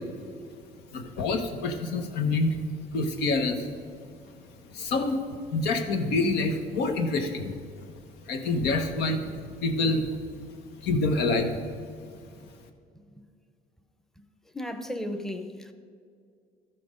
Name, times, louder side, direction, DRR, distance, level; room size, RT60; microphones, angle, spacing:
voice 1, 0.9-2.6 2.9-3.7 4.7-7.5 8.3-9.2 9.6-10.2 10.8-11.6, left 3 dB, 85° left, 6 dB, 1.1 m, -26 dB
voice 2, 14.5-15.7, left 1 dB, ahead, 7 dB, 0.7 m, -34 dB
13.5 x 5.9 x 5.1 m, 2.2 s
cardioid pair, 110°, 17 cm